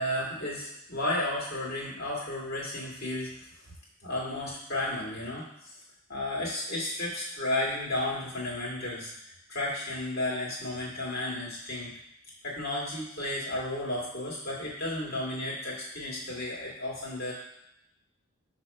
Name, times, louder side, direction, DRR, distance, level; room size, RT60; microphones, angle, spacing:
voice 1, 0.0-3.4 4.0-5.8 6.1-11.9 12.4-17.3, left 1 dB, 45° left, -5 dB, 1.9 m, -33 dB
6.2 x 2.9 x 5.4 m, 0.81 s
head